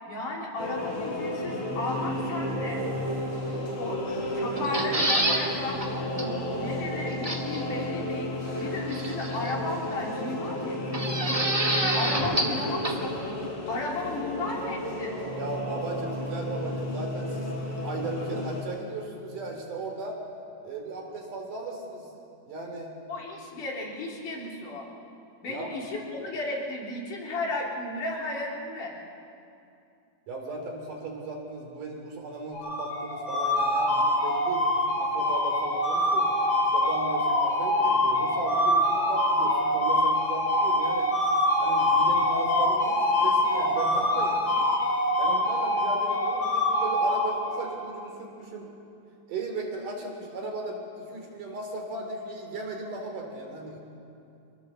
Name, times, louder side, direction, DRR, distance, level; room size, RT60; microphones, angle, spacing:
voice 1, 0.1-2.8 3.8-5.8 6.1-8.3 8.6-11.4 11.9-13.4 13.7-15.2 23.1-24.9 25.4-29.0, left 2 dB, 80° left, -2 dB, 5.1 m, -34 dB
sound 1, 0.6-18.6, left 1 dB, 45° left, 4.6 m, -32 dB
sound 2, 4.6-5.4 5.8-5.9 6.2-6.3 7.2-7.6 8.9-9.5 10.9-12.6 12.8-12.9, right 1 dB, 20° right, 1.1 m, -27 dB
voice 2, 15.4-20.2 20.6-22.1 22.5-23.0 25.5-25.7 30.3-36.3 36.7-41.1 41.6-44.4 45.2-48.7 49.3-53.8, right 3 dB, 80° right, 2 dB, 4.7 m, -36 dB
sound 3, 32.5-47.8, left 1 dB, 65° left, 4.0 m, -24 dB
25.0 x 19.0 x 7.4 m, 2.6 s
omnidirectional pair, 3.6 m